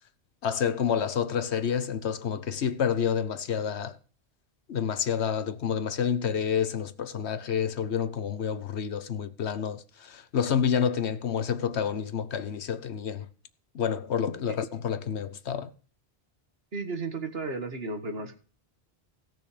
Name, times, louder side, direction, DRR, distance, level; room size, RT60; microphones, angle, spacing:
voice 1, 0.4-4.0 4.7-13.3 13.7-15.7, left 7 dB, 85° left, 1.2 m, -29 dB
voice 2, 16.7-18.4, right 3 dB, 65° right, 1.9 m, -34 dB
17.5 x 6.2 x 5.0 m
omnidirectional pair, 1.1 m